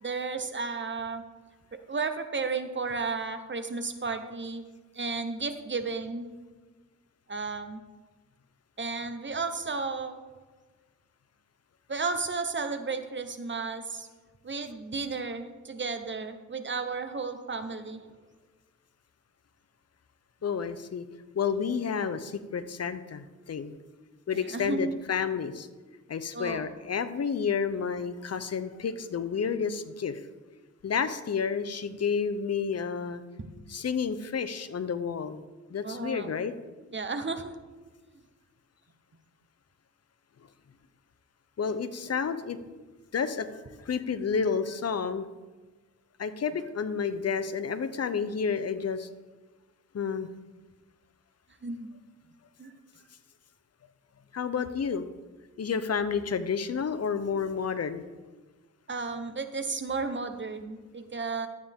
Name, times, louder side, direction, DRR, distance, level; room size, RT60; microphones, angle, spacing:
voice 1, 0.0-1.2 1.9-4.6 4.9-6.3 7.3-7.8 8.8-10.2 11.9-14.1 14.4-18.0 24.3-25.0 26.3-26.7 33.4-33.5 35.8-36.3 36.9-37.5 51.6-51.9 52.6-52.7 58.9-61.5, right 4 dB, 35° right, 8 dB, 1.1 m, -33 dB
voice 2, 20.4-21.0 21.3-23.8 24.3-25.7 26.1-30.2 30.8-33.2 33.7-35.4 35.7-36.5 41.6-42.6 43.1-45.2 46.2-49.1 49.9-50.3 54.3-55.0 55.6-58.0, left 6 dB, 55° left, 12 dB, 0.7 m, -30 dB
12.0 x 8.7 x 3.7 m, 1.3 s
wide cardioid pair, 85°, 31 cm